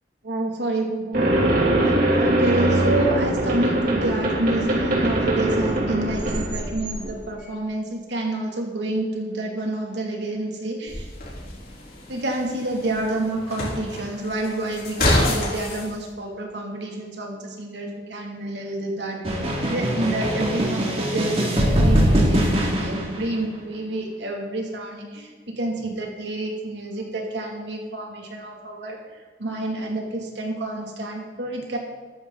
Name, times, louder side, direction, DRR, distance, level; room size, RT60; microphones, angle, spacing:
voice 1, 0.2-1.3 1.7-11.1 12.1-19.2 19.7-31.8, right 1 dB, 80° right, 0 dB, 2.7 m, -28 dB
sound 1, 1.1-7.1, right 1 dB, 55° right, 3.0 m, -22 dB
sound 2, 10.9-15.9, left 1 dB, 55° left, 3.7 m, -27 dB
sound 3, 19.2-23.5, equal, 35° right, 2.5 m, -21 dB
14.0 x 13.0 x 4.0 m, 1.4 s
head